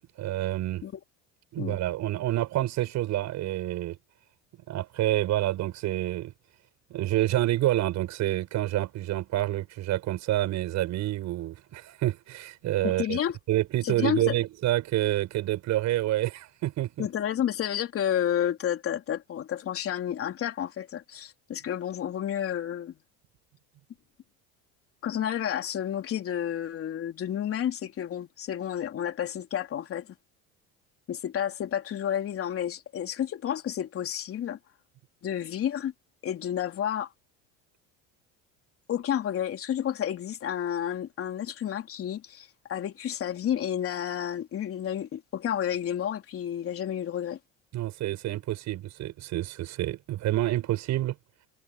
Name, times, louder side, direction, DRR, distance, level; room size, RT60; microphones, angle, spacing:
voice 1, 0.2-0.8 1.5-4.0 4.7-6.3 6.9-13.2 13.5-17.1 47.7-51.2, right 15 dB, 60° right, 7.4 m, -28 dB
voice 2, 12.8-13.4 13.8-14.3 17.0-23.0 25.0-30.1 31.1-34.6 35.2-35.9 36.2-37.1 38.9-47.4, left 10 dB, 45° left, 3.6 m, -30 dB
supercardioid pair, 115°, 32 cm